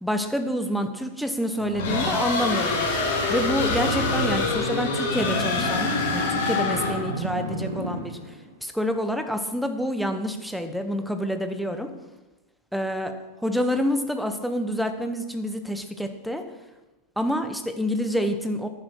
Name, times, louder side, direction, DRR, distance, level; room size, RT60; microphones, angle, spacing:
voice 1, 0.0-2.9 3.3-11.9 12.7-16.5 17.2-18.7, equal, ahead, 7 dB, 1.0 m, -28 dB
sound 1, 1.6-8.5, right 2 dB, 75° right, 1.7 m, -33 dB
sound 2, 1.8-7.1, left 4 dB, 50° left, 2.7 m, -25 dB
11.0 x 10.5 x 4.7 m, 1.1 s
figure-of-eight pair, 90°, 0 cm